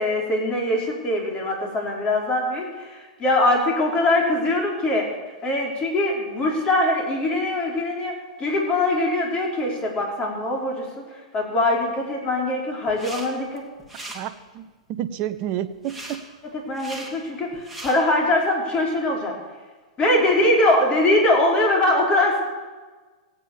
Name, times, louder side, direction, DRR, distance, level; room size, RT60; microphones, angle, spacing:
voice 1, 0.0-13.6 16.7-19.4 20.0-22.4, left 1 dB, 25° left, 0 dB, 4.1 m, -22 dB
sound 1, 12.9-13.3 13.6-14.2 15.8-16.2 16.7-17.1 17.5-17.9, right 2 dB, ahead, 3.0 m, -38 dB
voice 2, 14.1-16.2, right 11 dB, 40° right, 9 dB, 0.8 m, -30 dB
17.0 x 9.1 x 7.0 m, 1.3 s
hypercardioid pair, 115°, 4 cm